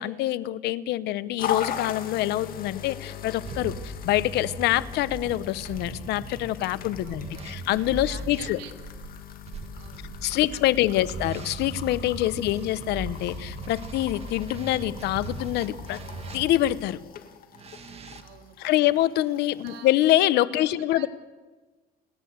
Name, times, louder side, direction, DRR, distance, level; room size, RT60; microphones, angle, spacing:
voice 1, 0.0-8.6 10.2-16.0 16.3-17.0 18.6-21.1, left 14 dB, 85° left, 17 dB, 0.9 m, -25 dB
sound 1, 1.4-20.2, left 9 dB, 60° left, 1.9 m, -40 dB
sound 2, 3.4-8.5 9.5-16.8 17.5-18.2, right 4 dB, 35° right, 2.0 m, -39 dB
sound 3, 5.0-10.2, right 6 dB, 55° right, 4.2 m, -48 dB
voice 2, 7.0-7.5 8.0-8.7 9.7-10.9 12.3-12.5 18.2-18.9 19.6-19.9 20.5-21.1, right 10 dB, 85° right, 5 dB, 2.4 m, -48 dB
29.5 x 11.5 x 8.0 m, 1.3 s
cardioid pair, 110°, 17 cm